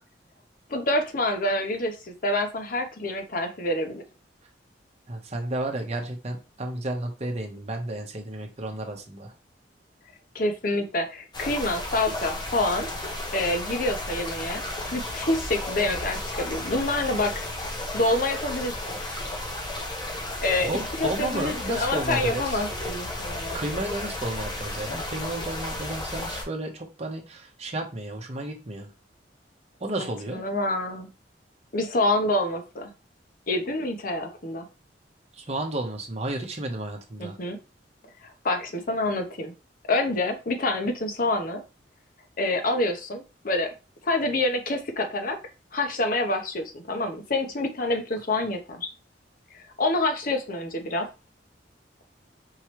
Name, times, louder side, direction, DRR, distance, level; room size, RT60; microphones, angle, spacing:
voice 1, 0.7-4.0 10.3-12.9 13.3-14.6 14.9-17.5 17.9-19.0 20.4-20.7 21.0-23.6 30.0-31.1 31.7-32.9 33.5-34.7 37.2-37.6 38.4-39.5 39.9-41.6 42.4-43.7 44.0-45.4 45.7-48.9 49.8-51.1, left 2 dB, 50° left, 5 dB, 0.8 m, -27 dB
voice 2, 5.1-9.3 20.6-22.6 23.5-28.9 29.8-30.5 35.3-37.4, right 1 dB, 40° right, 2 dB, 1.0 m, -32 dB
sound 1, 11.3-26.4, left 1 dB, 25° left, 0.9 m, -33 dB
4.7 x 3.1 x 3.0 m, 0.30 s
head